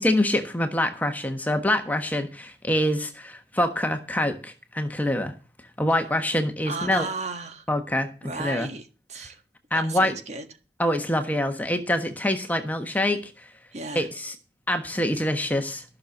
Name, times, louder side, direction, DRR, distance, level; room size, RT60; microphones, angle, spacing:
voice 1, 0.0-5.3 5.8-7.1 7.7-8.1 8.3-8.7 9.7-10.2 10.8-13.5 13.9-14.3 14.7-15.8, left 1 dB, 10° left, 6 dB, 1.3 m, -25 dB
voice 2, 6.7-7.6 8.2-9.4 9.7-10.4 13.7-14.1 15.0-15.1, right 3 dB, 40° right, 7 dB, 1.6 m, -35 dB
14.5 x 6.7 x 7.1 m, 0.32 s
head